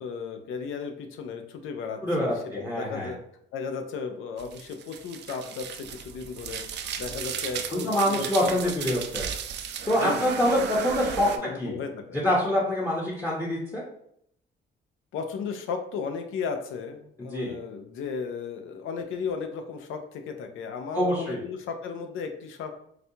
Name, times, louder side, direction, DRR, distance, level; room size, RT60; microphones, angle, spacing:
voice 1, 0.0-3.2 3.5-8.5 10.0-10.6 11.3-12.2 15.1-22.7, left 5 dB, 80° left, 6 dB, 0.6 m, -35 dB
voice 2, 2.0-3.1 7.7-9.3 9.9-11.3 11.6-11.8 12.2-13.8 17.3-17.5 20.9-21.4, left 1 dB, 15° left, -4 dB, 0.8 m, -25 dB
sound 1, 4.4-11.4, right 8 dB, 60° right, 0.4 m, -35 dB
4.1 x 2.3 x 2.7 m, 0.71 s
cardioid pair, 90°, 20 cm